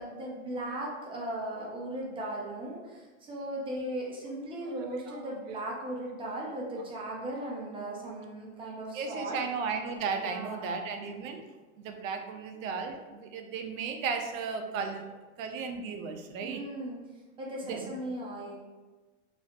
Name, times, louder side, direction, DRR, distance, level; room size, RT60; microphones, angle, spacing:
voice 1, 0.0-9.4 10.1-10.7 16.4-17.0 17.4-18.5, right 1 dB, 15° right, -3 dB, 0.4 m, -37 dB
voice 2, 8.9-11.4 11.8-15.1 15.4-16.6 17.7-17.9, right 5 dB, 80° right, 5 dB, 0.5 m, -35 dB
2.5 x 2.0 x 2.7 m, 1.2 s
hypercardioid pair, 120°, 39 cm